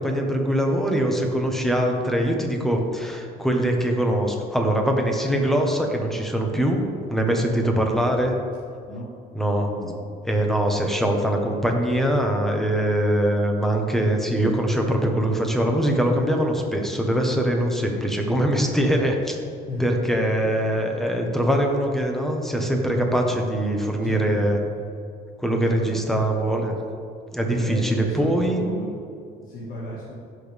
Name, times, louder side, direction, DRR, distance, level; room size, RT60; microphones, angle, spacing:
voice 1, 0.0-8.3 9.3-9.7 10.2-19.4 19.8-24.6 25.4-26.7 27.3-28.7, right 1 dB, ahead, 1 dB, 1.5 m, -22 dB
voice 2, 19.6-20.1 20.4-20.5 24.0-24.4 25.6-25.9 27.6-29.0 29.4-30.1, left 1 dB, 55° left, -6 dB, 2.0 m, -34 dB
15.5 x 6.5 x 3.6 m, 2.5 s
cardioid pair, 110°, 17 cm